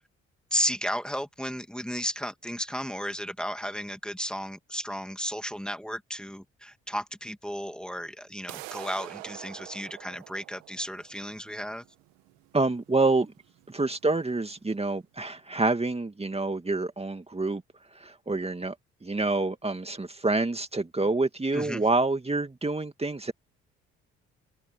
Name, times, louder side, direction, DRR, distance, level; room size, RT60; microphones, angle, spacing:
voice 1, 0.5-11.8 21.5-21.8, equal, 5° left, 2.5 m, -34 dB
sound 1, 8.5-14.5, right 22 dB, 85° right, 1.8 m, -46 dB
voice 2, 12.5-13.3 13.7-17.6 18.0-18.7 19.0-23.3, right 3 dB, 20° right, 2.3 m, -27 dB
hypercardioid pair, 55°, 30 cm